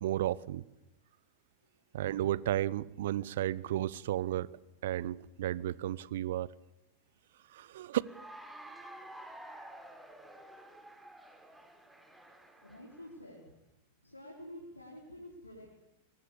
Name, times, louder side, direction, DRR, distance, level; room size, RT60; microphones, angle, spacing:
voice 1, 0.0-0.6 1.9-4.5 4.8-6.5 7.5-8.0, right 13 dB, 55° right, 0.9 m, -33 dB
Cheering / Applause, 8.0-13.1, right 1 dB, 5° right, 4.1 m, -51 dB
voice 2, 12.6-13.5 14.0-15.7, left 1 dB, 85° left, 4.8 m, -49 dB
23.5 x 22.5 x 8.6 m
figure-of-eight pair, 90°, 0 cm